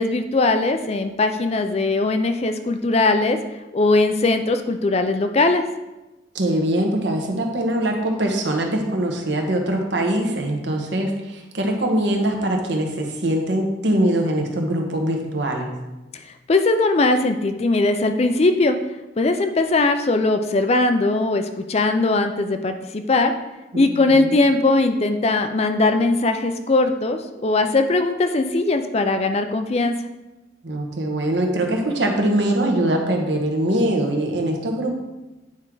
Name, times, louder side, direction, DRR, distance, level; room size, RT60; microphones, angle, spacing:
voice 1, 0.0-3.4 3.7-5.7 16.5-18.8 19.2-23.3 23.8-29.9, left 2 dB, 35° left, 7 dB, 0.4 m, -20 dB
voice 2, 6.3-15.7 23.7-24.4 30.6-34.9, right 1 dB, 65° right, 2 dB, 1.2 m, -22 dB
9.0 x 4.6 x 3.8 m, 1.0 s
head